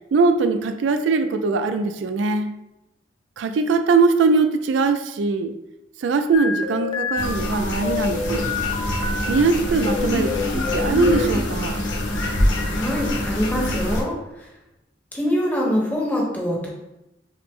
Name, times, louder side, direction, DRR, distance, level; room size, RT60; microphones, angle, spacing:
voice 1, 0.1-2.5 3.4-5.5 6.0-8.4 9.3-11.8, right 4 dB, 75° right, 8 dB, 0.3 m, -21 dB
sound 1, 6.3-9.3 9.8-11.4, left 5 dB, 25° left, 0.4 m, -28 dB
sound 2, 7.2-14.0, left 1 dB, 80° left, 0.7 m, -25 dB
voice 2, 12.7-14.2 15.1-16.7, equal, 10° left, -3 dB, 0.9 m, -24 dB
5.8 x 2.0 x 3.5 m, 0.92 s
head